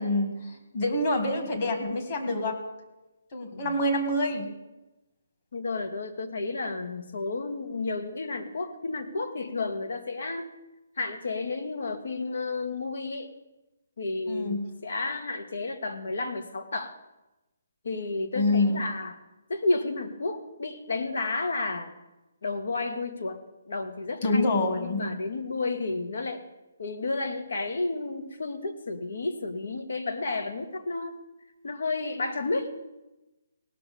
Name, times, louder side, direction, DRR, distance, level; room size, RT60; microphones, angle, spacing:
voice 1, 0.0-2.5 3.3-4.5 14.3-14.6 18.3-18.8 24.2-25.1 25.4-25.5, left 2 dB, 35° left, 4 dB, 2.1 m, -26 dB
voice 2, 5.5-10.5 11.0-13.3 14.0-16.9 17.8-19.2 19.5-21.9 22.4-24.4 24.8-26.4 26.8-31.2 31.6-32.7, left 3 dB, 70° left, 7 dB, 1.5 m, -31 dB
18.0 x 6.2 x 6.9 m, 1.0 s
hypercardioid pair, 165°, 0 cm